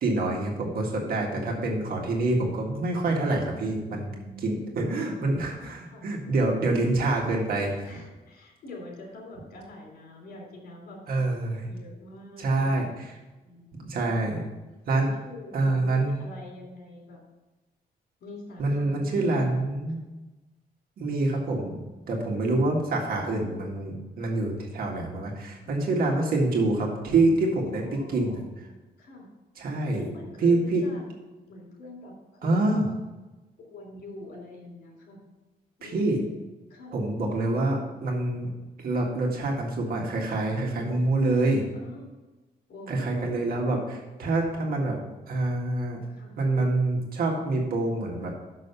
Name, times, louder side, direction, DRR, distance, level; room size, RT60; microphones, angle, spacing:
voice 1, 0.0-4.1 4.4-7.8 11.1-11.7 12.4-12.9 13.8-14.4 14.9-15.1 15.5-16.1 18.6-20.0 21.0-21.7 22.1-27.8 28.1-28.4 29.6-30.0 30.4-30.8 32.4-32.9 35.8-36.2 36.9-38.5 38.8-41.6 42.9-45.0 45.3-46.0 46.4-48.3, right 2 dB, 70° right, 0 dB, 1.8 m, -26 dB
voice 2, 3.8-5.1 5.8-6.0 7.8-11.2 11.7-14.3 14.9-17.2 18.2-19.8 25.6-26.0 27.7-28.5 29.0-29.3 29.9-31.1 31.5-32.7 33.6-35.3 35.8-37.0 41.7-42.1 42.7-42.9 46.1-46.3, left 2 dB, 80° left, 0 dB, 3.2 m, -45 dB
6.5 x 6.3 x 6.8 m, 1.1 s
wide cardioid pair, 150°, 16 cm